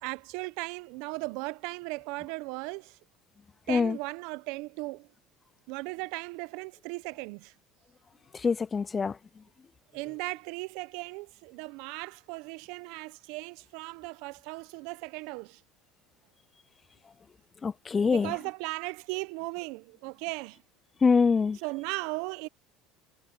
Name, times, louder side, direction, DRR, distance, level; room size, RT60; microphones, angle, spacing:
voice 1, 0.0-3.0 3.7-5.1 5.7-7.5 9.9-15.6 18.1-20.6 21.6-22.5, right 25 dB, 70° right, 0.8 m, -37 dB
voice 2, 8.3-9.2 17.6-18.3 21.0-21.6, left 5 dB, 25° left, 0.4 m, -24 dB
supercardioid pair, 90°, 0 cm